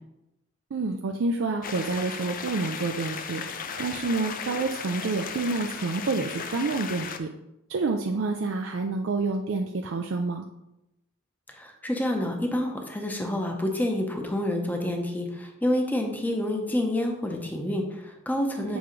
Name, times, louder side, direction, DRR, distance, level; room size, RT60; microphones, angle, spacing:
voice 1, 0.7-3.4 3.8-7.3 7.7-10.4 18.7-18.8, right 3 dB, 65° right, 3 dB, 0.4 m, -28 dB
sound 1, 1.6-7.2, left 6 dB, 45° left, 0.5 m, -36 dB
voice 2, 11.6-18.8, left 1 dB, 10° left, 2 dB, 0.8 m, -28 dB
8.0 x 4.7 x 3.2 m, 0.90 s
head